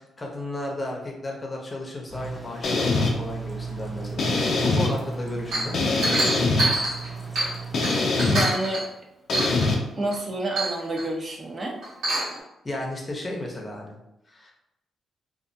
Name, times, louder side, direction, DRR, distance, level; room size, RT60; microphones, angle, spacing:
voice 1, 0.0-4.3 4.6-5.7 12.6-14.0 14.3-14.5, left 1 dB, 30° left, -1 dB, 0.7 m, -33 dB
sound 1, 2.1-7.9, right 5 dB, 10° right, 0.8 m, -36 dB
sound 2, 2.6-3.1 4.2-4.9 5.7-6.7 7.7-8.5 9.3-9.8, left 3 dB, 65° left, 0.4 m, -23 dB
Chink clink, 5.5-7.6 7.8-8.9 9.3-9.7 10.1-10.2 10.6-11.1 11.8-12.4, right 2 dB, 80° right, 1.0 m, -26 dB
voice 2, 8.3-8.8 10.0-11.7, right 1 dB, 40° right, 1 dB, 0.6 m, -28 dB
2.4 x 2.1 x 2.6 m, 0.88 s
supercardioid pair, 55°, 0 cm